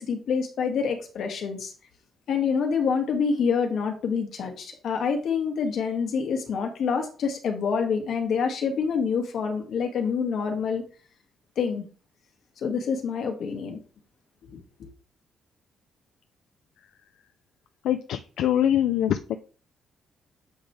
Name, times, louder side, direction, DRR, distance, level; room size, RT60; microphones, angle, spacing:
voice 1, 0.0-1.7 2.3-10.8 11.6-11.8 12.6-13.8 14.5-14.6, left 6 dB, 55° left, 4 dB, 1.7 m, -27 dB
voice 2, 17.8-19.2, left 10 dB, 75° left, 8 dB, 0.5 m, -23 dB
7.9 x 5.1 x 3.4 m, 0.37 s
cardioid pair, 160°, 0 cm